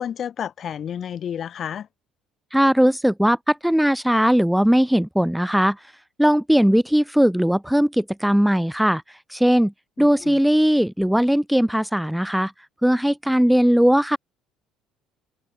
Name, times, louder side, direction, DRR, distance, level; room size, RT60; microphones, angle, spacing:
voice 1, 0.0-1.9 10.0-10.4, left 9 dB, 45° left, 0.8 m, -31 dB
voice 2, 2.5-5.8 6.2-9.0 9.3-9.7 10.0-12.5 12.8-14.2, equal, ahead, 0.5 m, -19 dB
figure-of-eight pair, 55°, 0 cm